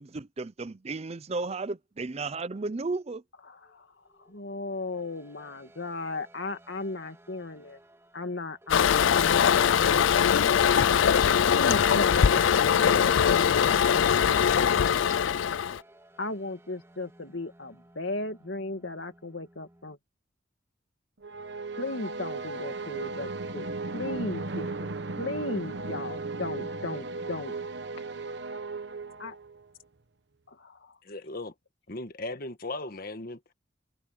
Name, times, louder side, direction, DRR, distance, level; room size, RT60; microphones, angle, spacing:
voice 1, 0.0-3.2, right 3 dB, 35° right, 0.5 m, -34 dB
voice 2, 3.5-7.8 8.1-10.1 11.5-14.2 16.2-20.0 21.8-27.5 29.2-29.4 30.5-31.0, left 2 dB, 70° left, 2.4 m, -36 dB
sound 1, 3.6-20.0, right 1 dB, 15° right, 3.3 m, -59 dB
Toilet flush, 8.7-15.8, left 8 dB, 90° left, 0.4 m, -22 dB
sound 2, 21.2-29.7, right 3 dB, 65° right, 1.1 m, -36 dB
voice 3, 31.0-31.5 31.9-33.4, left 2 dB, 50° left, 1.6 m, -37 dB
head